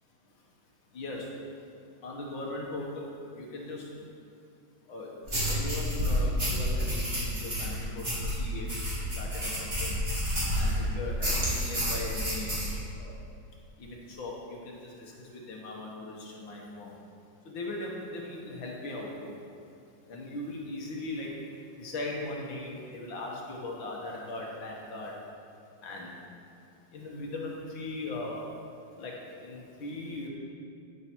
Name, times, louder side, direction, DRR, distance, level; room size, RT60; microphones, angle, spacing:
voice 1, 0.9-1.3 2.0-3.0 3.3-3.9 4.9-8.7 9.2-9.9 10.5-12.5 13.0-13.2 13.8-14.8 15.3-16.9 17.5-19.3 20.1-21.3 21.8-25.1 25.8-26.1 26.9-28.4 29.0-29.1 29.4-30.3, left 2 dB, 75° left, -2 dB, 2.1 m, -39 dB
sound 1, 5.3-10.8 11.2-12.7, equal, 30° right, 3.2 m, -30 dB
12.5 x 7.8 x 4.5 m, 2.5 s
omnidirectional pair, 2.1 m